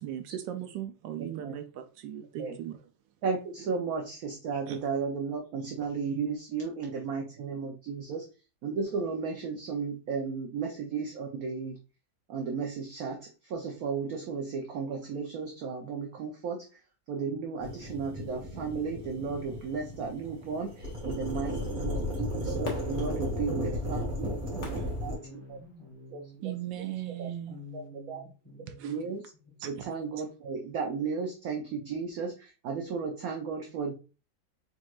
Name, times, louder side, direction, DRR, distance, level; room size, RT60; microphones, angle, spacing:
voice 1, 0.0-1.6 2.0-2.8 4.7-4.8 26.4-27.6 28.8-28.9, right 11 dB, 80° right, 8 dB, 1.2 m, -37 dB
voice 2, 1.2-1.6 2.4-2.6 3.2-8.3 8.6-11.8 12.3-16.7 17.1-24.4 25.0-25.6 26.1-26.8 27.2-27.3 27.7-28.2 28.8-29.3 29.6-34.0, right 5 dB, 65° right, 2 dB, 1.0 m, -34 dB
sound 1, 17.6-25.2, left 1 dB, 30° right, 1.9 m, -34 dB
Fireworks, 22.6-26.0 26.5-26.6, left 4 dB, 70° left, 1.7 m, -43 dB
voice 3, 23.5-26.4 27.5-29.1 29.8-29.9, equal, 15° left, -6 dB, 2.5 m, -48 dB
4.4 x 4.3 x 2.4 m, 0.33 s
omnidirectional pair, 2.0 m